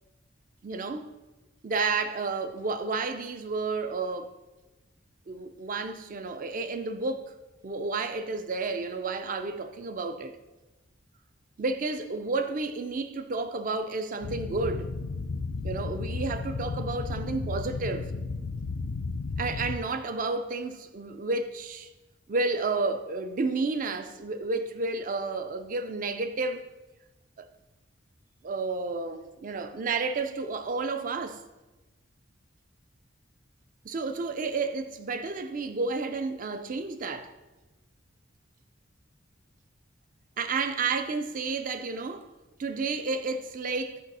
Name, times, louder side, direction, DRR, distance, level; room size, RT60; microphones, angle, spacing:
voice 1, 0.6-1.1 1.6-4.3 5.3-7.4 7.6-10.4 11.6-14.9 15.6-18.1 19.4-21.9 22.3-26.6 27.4-27.5 28.4-31.4 33.8-37.3 40.4-42.3 42.6-44.0, right 3 dB, 40° right, 0.4 m, -31 dB
sound 1, 14.2-19.8, left 4 dB, 60° left, 0.4 m, -33 dB
6.5 x 5.3 x 4.1 m
head